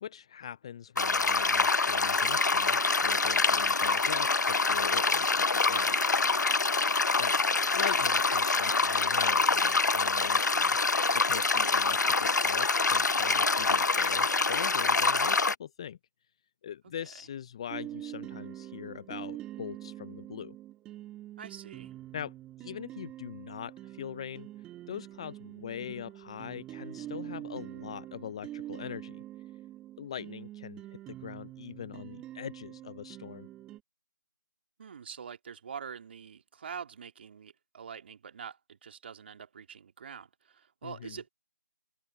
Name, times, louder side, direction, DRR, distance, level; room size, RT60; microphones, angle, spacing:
voice 1, 0.0-5.9 7.2-10.8 11.1-16.0 16.6-20.6 22.1-22.3 22.6-24.5 24.9-29.2 30.0-30.8 31.1-33.5 40.8-41.2, left 9 dB, 15° left, 0.5 m, -42 dB
sound 1, 1.0-15.6, left 4 dB, 60° left, 1.0 m, -26 dB
sound 2, 17.7-33.8, right 14 dB, 10° right, 1.8 m, -45 dB
voice 2, 21.4-21.9 34.8-41.3, right 7 dB, 35° right, 2.5 m, -45 dB
figure-of-eight pair, 160°, 10 cm